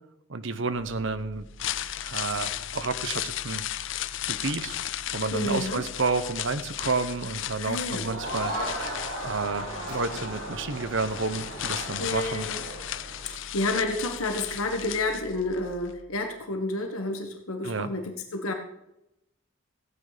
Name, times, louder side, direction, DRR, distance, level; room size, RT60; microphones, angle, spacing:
voice 1, 0.3-1.5 2.0-3.6 4.2-4.8 5.1-8.9 9.2-12.5 17.6-17.9, right 4 dB, 60° right, 11 dB, 0.9 m, -30 dB
sound 1, 0.7-16.5, equal, 35° right, 5.2 m, -49 dB
sound 2, 1.4-15.6 15.9-16.0, left 12 dB, 60° left, 0.5 m, -35 dB
voice 2, 5.3-5.8 7.6-8.1 12.0-12.6 13.3-18.5, left 2 dB, 80° left, 4 dB, 1.5 m, -30 dB
Crowd, 8.0-13.3, right 1 dB, 85° right, 5.1 m, -36 dB
15.5 x 8.9 x 5.1 m, 0.87 s
head